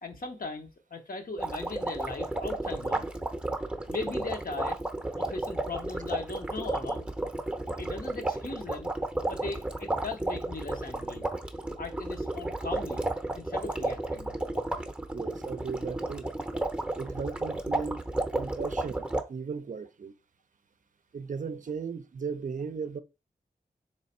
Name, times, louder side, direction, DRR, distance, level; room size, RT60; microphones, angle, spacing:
voice 1, 0.0-3.0 3.9-4.8 5.2-7.1 7.8-8.9 9.2-11.3 11.8-13.1 13.3-14.3, left 3 dB, 60° left, 0.8 m, -39 dB
sound 1, 1.4-19.2, right 2 dB, 5° right, 0.7 m, -32 dB
voice 2, 15.1-16.3 17.0-18.0 18.3-20.1 21.1-23.0, right 5 dB, 55° right, 0.4 m, -36 dB
3.4 x 3.1 x 4.2 m
wide cardioid pair, 60°, 16 cm